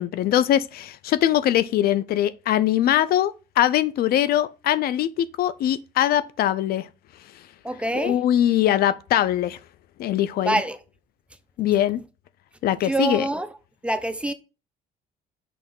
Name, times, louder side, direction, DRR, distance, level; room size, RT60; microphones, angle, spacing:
voice 1, 0.0-6.9 7.9-9.6 10.0-10.6 11.6-12.0 12.6-13.3, left 12 dB, 65° left, 0.5 m, -22 dB
voice 2, 7.6-8.1 10.4-10.8 12.8-13.5 13.8-14.3, right 2 dB, 5° right, 0.6 m, -25 dB
5.9 x 3.1 x 5.3 m
cardioid pair, 110°, 17 cm